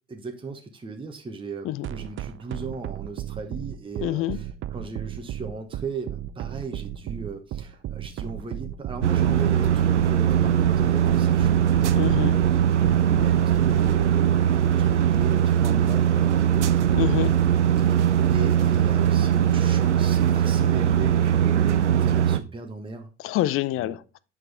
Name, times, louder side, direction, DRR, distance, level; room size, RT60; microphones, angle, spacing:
voice 1, 0.1-12.1 13.0-16.6 17.8-18.0 18.3-23.1 23.8-24.0, right 4 dB, 15° right, 1.0 m, -37 dB
sound 1, 1.8-14.1, right 12 dB, 35° right, 0.5 m, -34 dB
voice 2, 4.0-4.4 11.9-12.4 16.9-17.4 23.2-24.0, left 15 dB, 40° left, 0.5 m, -26 dB
sound 2, 9.0-22.4, right 10 dB, 85° right, 0.5 m, -20 dB
7.7 x 6.2 x 3.5 m
figure-of-eight pair, 55°, 34 cm